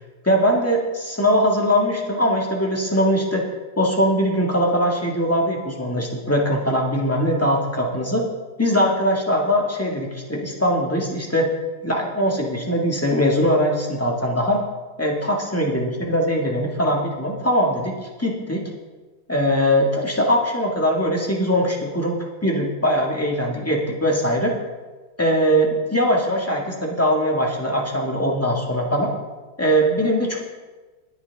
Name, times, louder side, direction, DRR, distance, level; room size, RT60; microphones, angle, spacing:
voice 1, 0.2-3.4 3.8-8.2 8.6-11.5 11.8-14.6 15.0-18.6 19.3-22.2 22.4-24.5 25.2-29.1 29.6-30.4, equal, 5° left, -1 dB, 1.6 m, -21 dB
20.0 x 9.3 x 3.5 m, 1.3 s
omnidirectional pair, 2.4 m